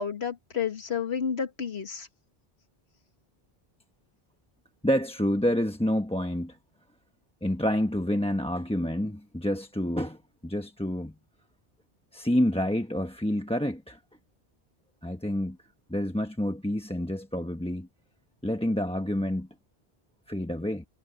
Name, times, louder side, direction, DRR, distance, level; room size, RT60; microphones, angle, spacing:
voice 1, 0.0-2.1, left 7 dB, 80° left, 1.8 m, -31 dB
voice 2, 4.8-6.6 7.4-11.1 12.1-14.0 15.0-15.6 15.9-17.9 18.4-19.5 20.3-20.8, equal, 5° left, 0.9 m, -28 dB
omnidirectional pair, 1.1 m